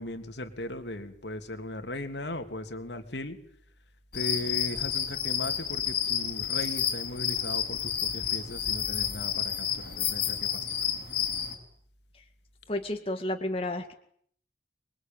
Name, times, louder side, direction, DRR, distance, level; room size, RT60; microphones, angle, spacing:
voice 1, 0.0-3.4 4.1-10.8, left 1 dB, 75° left, 7 dB, 3.1 m, -38 dB
sound 1, 4.1-11.5, left 9 dB, 60° left, 6.3 m, -30 dB
voice 2, 12.7-13.9, left 1 dB, 30° left, 4 dB, 2.1 m, -31 dB
26.0 x 22.5 x 9.2 m, 0.64 s
head